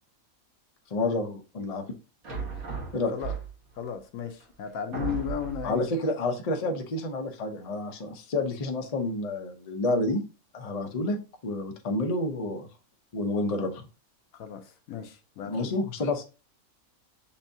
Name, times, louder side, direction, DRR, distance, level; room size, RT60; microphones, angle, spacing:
voice 1, 0.9-1.8 2.9-3.1 5.6-10.2 10.5-11.2 11.4-12.7 13.1-13.8 15.5-16.2, left 2 dB, 40° left, 0.6 m, -29 dB
sound 1, 2.2-3.8 4.4-4.5 4.9-5.8, right 5 dB, 55° right, 1.5 m, -35 dB
voice 2, 3.8-5.9 14.4-15.7, left 8 dB, 80° left, 1.1 m, -35 dB
6.9 x 2.6 x 2.6 m
omnidirectional pair, 1.5 m